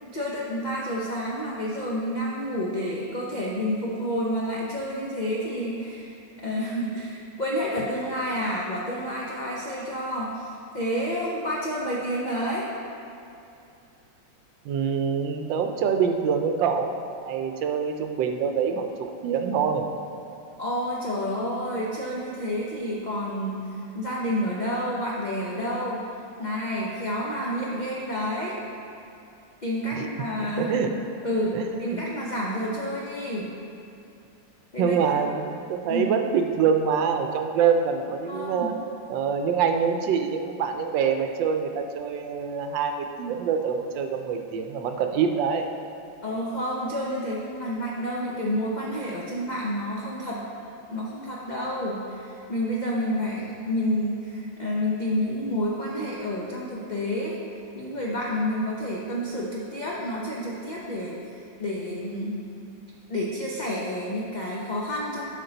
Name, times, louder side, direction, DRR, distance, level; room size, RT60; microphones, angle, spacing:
voice 1, 0.0-6.1 6.4-10.5 10.7-12.7 20.6-26.0 26.4-28.5 29.6-30.7 31.2-33.5 34.7-35.2 35.9-36.1 38.2-38.7 46.2-50.4 50.9-57.4 57.7-62.4 63.1-65.2, equal, 50° left, -5 dB, 0.5 m, -29 dB
voice 2, 14.6-17.0 17.2-19.9 29.9-30.1 30.6-30.9 31.5-32.0 34.8-38.7 39.1-45.7, right 6 dB, 80° right, 5 dB, 1.3 m, -25 dB
11.0 x 5.5 x 3.9 m, 2.7 s
omnidirectional pair, 2.0 m